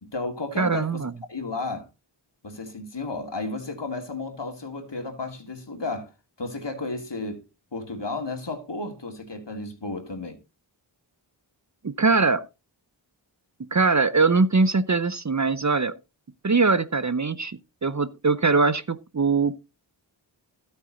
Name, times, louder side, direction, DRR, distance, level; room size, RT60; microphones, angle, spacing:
voice 1, 0.0-1.0 1.3-1.9 2.4-6.1 6.4-7.4 7.7-10.4, left 3 dB, 60° left, 2.6 m, -33 dB
voice 2, 0.6-1.1 11.8-12.5 13.6-16.0 16.4-19.6, right 4 dB, 35° right, 0.7 m, -22 dB
12.5 x 8.2 x 4.0 m
wide cardioid pair, 40°, 47 cm